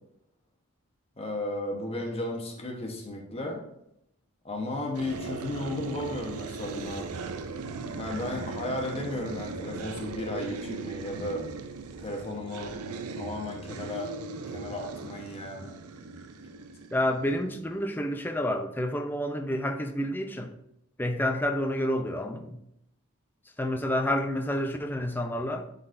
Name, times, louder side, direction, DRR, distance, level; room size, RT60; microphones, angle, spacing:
voice 1, 1.2-3.6 4.4-7.1 8.0-11.5 12.0-12.8 13.1-14.1 14.5-15.7, left 1 dB, 25° left, 1.0 m, -34 dB
sound 1, 4.9-17.9, right 4 dB, 85° right, 0.5 m, -38 dB
voice 2, 16.9-20.5 21.0-22.6 23.6-25.7, left 1 dB, 10° left, 0.4 m, -29 dB
11.0 x 4.0 x 2.6 m
head